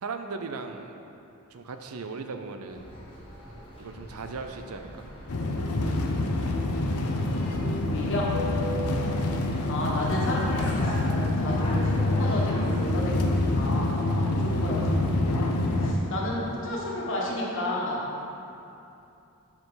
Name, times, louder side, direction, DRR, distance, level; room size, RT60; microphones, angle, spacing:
voice 1, 0.0-1.0 1.5-2.9 3.8-5.0 8.7-8.9, right 4 dB, 80° right, 6 dB, 0.6 m, -37 dB
sound 1, 2.7-16.5, left 1 dB, 25° left, 1.3 m, -41 dB
sound 2, 5.3-15.9, left 2 dB, 80° left, 0.7 m, -26 dB
Bass guitar, 7.6-11.9, right 2 dB, 40° right, 0.7 m, -46 dB
voice 2, 7.9-8.3 9.7-18.2, left 1 dB, 60° left, -4 dB, 1.5 m, -32 dB
12.0 x 4.8 x 4.0 m, 2.8 s
head